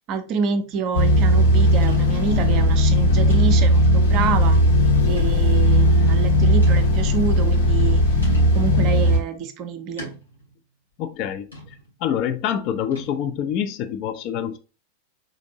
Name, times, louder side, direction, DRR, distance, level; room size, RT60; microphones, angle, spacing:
voice 1, 0.1-4.6 5.0-8.1 8.5-10.1, right 6 dB, 40° right, 0.5 m, -27 dB
sound 1, 0.7-1.0 1.8-2.4 2.9-3.0 3.3-3.9 5.2-5.5 6.0-6.1 6.6-7.3 8.2-8.7 10.0-10.6 11.5-11.9 12.9-13.4, equal, 80° left, 1.9 m, -40 dB
sound 2, 0.9-9.2, equal, 60° left, 0.9 m, -17 dB
voice 2, 11.0-11.5 12.0-14.6, left 9 dB, 40° left, 0.4 m, -26 dB
3.9 x 2.5 x 2.7 m
figure-of-eight pair, 90°, 0 cm